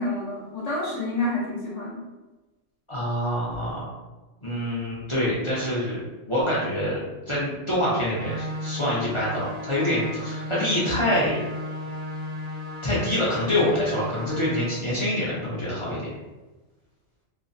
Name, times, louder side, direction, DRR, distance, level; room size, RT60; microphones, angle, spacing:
voice 1, 0.0-2.0, left 2 dB, 70° left, -5 dB, 0.9 m, -28 dB
voice 2, 2.9-3.8 4.4-7.0 7.3-11.4 12.8-16.1, left 1 dB, 40° left, -8 dB, 0.4 m, -26 dB
sound 1, 8.1-14.7, left 1 dB, 65° right, 0.7 m, -35 dB
2.6 x 2.1 x 2.5 m, 1.1 s
omnidirectional pair, 1.3 m